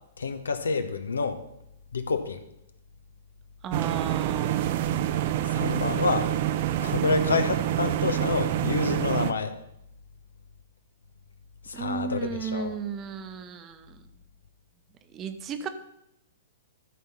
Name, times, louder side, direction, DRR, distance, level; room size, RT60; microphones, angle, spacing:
voice 1, 0.2-1.4 1.9-2.4 5.5-6.3 6.8-9.6 11.7-12.8, left 4 dB, 80° left, 10 dB, 0.9 m, -28 dB
voice 2, 3.6-4.7 11.7-14.0 15.1-15.7, right 6 dB, 25° right, 9 dB, 1.0 m, -34 dB
sound 1, 3.7-9.3, right 12 dB, 50° right, 0.6 m, -27 dB
13.0 x 4.7 x 5.6 m, 0.80 s
figure-of-eight pair, 115°, 0 cm